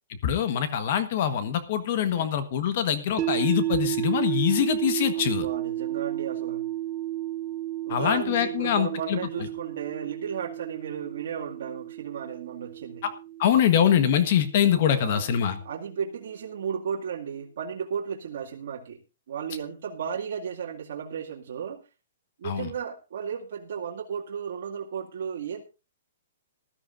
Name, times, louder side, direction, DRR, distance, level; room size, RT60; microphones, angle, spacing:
voice 1, 0.2-5.5 7.9-9.2 13.4-15.6 22.4-22.7, left 9 dB, 45° left, 10 dB, 1.3 m, -24 dB
sound 1, 3.2-15.3, right 14 dB, 20° right, 0.7 m, -32 dB
voice 2, 5.1-6.7 7.8-13.0 14.9-15.3 15.6-19.0 19.3-21.8 22.4-25.6, right 7 dB, 60° right, -2 dB, 2.2 m, -34 dB
19.5 x 13.0 x 2.6 m, 0.29 s
hypercardioid pair, 165°, 0 cm